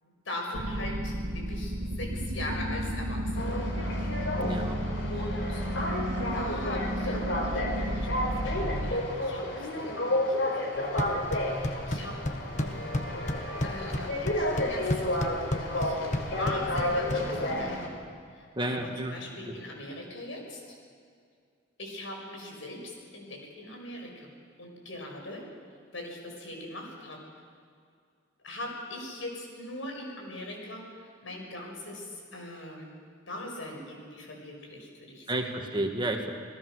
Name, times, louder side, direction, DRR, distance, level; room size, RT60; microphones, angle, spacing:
voice 1, 0.0-3.7 5.1-5.6 6.3-11.2 11.4-12.2 12.5-13.3 13.6-14.1 14.5-17.9 18.3-20.8 21.8-24.3 24.6-25.5 25.9-27.2 28.4-30.9 31.2-33.0 33.3-35.5, left 1 dB, 90° left, 1 dB, 6.0 m, -41 dB
sound 1, 0.5-8.9, equal, 65° right, 2.1 m, -32 dB
sound 2, 3.4-17.9, left 1 dB, 70° left, 3.9 m, -31 dB
voice 2, 4.4-4.8 18.6-19.1 35.3-36.3, right 1 dB, 25° right, 3 dB, 2.0 m, -31 dB
sound 3, 10.8-17.8, left 1 dB, 40° left, 1.4 m, -34 dB
28.5 x 18.5 x 6.5 m, 2.2 s
head